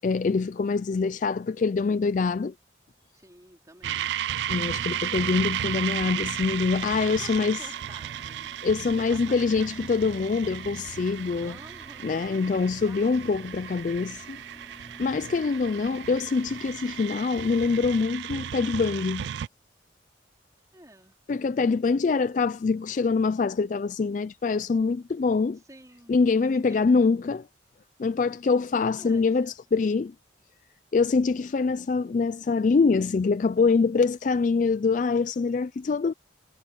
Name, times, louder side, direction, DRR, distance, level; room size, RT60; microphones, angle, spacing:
voice 1, 0.0-2.5 4.5-7.7 8.6-11.5 12.0-14.4 15.0-19.3 21.3-25.6 26.1-27.4 28.0-30.1 30.9-36.1, left 4 dB, 40° left, 0.3 m, -24 dB
voice 2, 3.1-4.2 7.1-8.5 8.9-10.0 11.4-13.6 20.7-21.2 25.7-26.2 26.4-27.1 28.8-29.5, right 1 dB, 20° right, 3.9 m, -51 dB
sound 1, 3.8-19.5, right 10 dB, 65° right, 0.3 m, -34 dB
sound 2, 4.5-18.1, left 1 dB, 20° left, 5.6 m, -51 dB
head